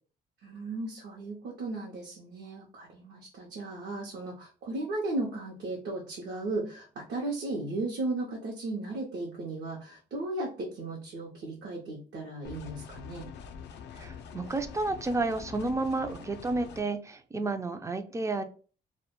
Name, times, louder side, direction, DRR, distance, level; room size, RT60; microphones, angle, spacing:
voice 1, 0.4-13.3, right 2 dB, 70° right, -2 dB, 0.6 m, -36 dB
sound 1, 12.4-16.8, left 6 dB, 70° left, 0.4 m, -45 dB
voice 2, 13.9-18.4, right 2 dB, 15° right, 9 dB, 0.3 m, -31 dB
2.1 x 2.1 x 2.9 m, 0.38 s
cardioid pair, 80°, 18 cm